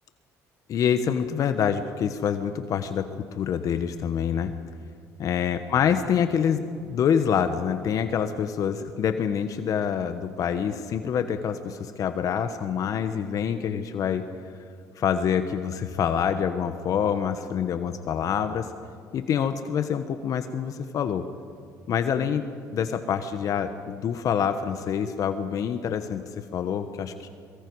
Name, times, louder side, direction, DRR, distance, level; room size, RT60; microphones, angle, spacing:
voice 1, 0.7-4.5 5.2-14.3 15.0-18.7 19.1-21.2 21.9-22.4 22.7-27.3, left 8 dB, 55° left, 9 dB, 1.1 m, -26 dB
25.0 x 23.0 x 4.8 m, 2.3 s
cardioid pair, 95°, 7 cm